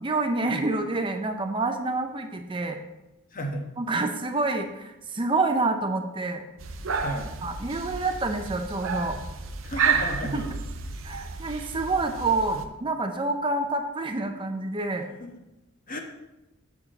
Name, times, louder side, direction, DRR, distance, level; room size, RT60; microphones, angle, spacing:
voice 1, 0.0-2.8 3.8-6.4 7.4-9.2 10.3-10.4 11.0-15.1, right 3 dB, 25° right, 5 dB, 0.6 m, -27 dB
voice 2, 3.3-3.7 7.0-7.3 9.6-10.5 15.1-15.3 15.9-16.0, equal, 40° left, 3 dB, 1.2 m, -33 dB
sound 1, 6.6-12.7, right 5 dB, 75° right, 0.8 m, -31 dB
7.3 x 4.8 x 6.5 m, 0.97 s
head